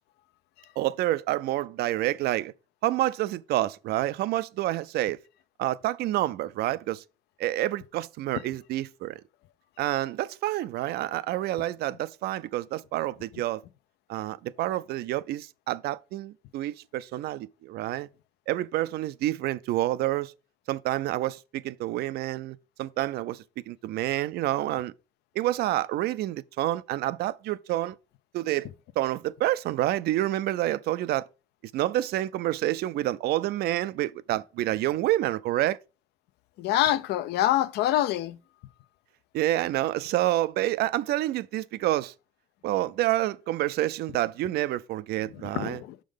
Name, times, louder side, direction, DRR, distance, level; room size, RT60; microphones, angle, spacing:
voice 1, 0.8-2.5 2.8-5.2 5.6-7.0 7.4-9.2 9.8-13.6 14.1-18.1 18.5-20.3 20.7-24.9 25.4-28.0 28.3-28.7 29.0-31.3 31.7-35.8 39.3-42.1 42.6-45.8, right 15 dB, 70° right, 0.4 m, -28 dB
voice 2, 36.6-38.4 45.5-46.0, left 13 dB, 80° left, 0.5 m, -25 dB
6.2 x 3.8 x 5.0 m
cardioid pair, 110°, 17 cm